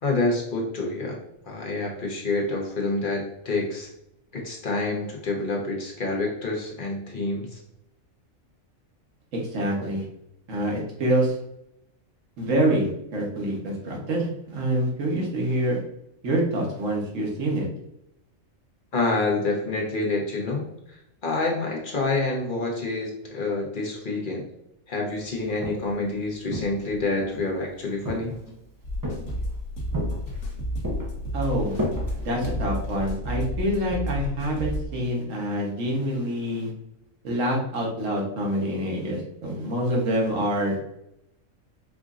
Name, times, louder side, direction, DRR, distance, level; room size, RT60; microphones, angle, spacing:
voice 1, 0.0-1.2 1.5-3.9 4.3-7.6 18.9-24.4 24.9-28.3, left 2 dB, 45° left, -1 dB, 0.9 m, -27 dB
voice 2, 9.3-10.0 10.5-11.4 12.4-15.8 16.2-17.6 31.3-31.8 32.2-36.7 37.2-41.0, right 1 dB, 70° right, -1 dB, 1.4 m, -26 dB
Walk footsteps, 25.4-26.0 26.5-27.5 28.0-28.6 29.0-29.6 29.9-30.5 30.8-33.1, equal, 25° right, 0.5 m, -33 dB
sound 1, 28.8-34.9, equal, 70° left, 1.2 m, -31 dB
4.8 x 2.5 x 2.4 m, 0.80 s
omnidirectional pair, 1.4 m